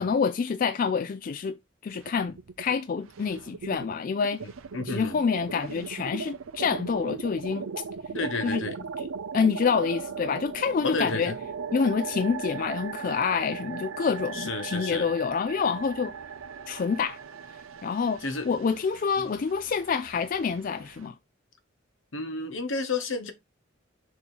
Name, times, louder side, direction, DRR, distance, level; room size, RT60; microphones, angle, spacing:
voice 1, 0.0-1.6 1.8-4.4 4.9-7.7 8.4-8.6 9.0-9.1 9.3-11.3 11.7-16.1 16.7-17.2 17.8-18.2 18.5-21.2, left 5 dB, 40° left, 0.3 m, -27 dB
sound 1, 1.9-2.7 3.0-21.1, right 6 dB, 90° right, 0.5 m, -38 dB
voice 2, 4.7-5.2 8.1-8.8 10.8-11.4 14.3-15.1 18.2-18.5 22.1-23.3, left 3 dB, 70° left, 1.1 m, -31 dB
6.6 x 2.8 x 5.4 m
head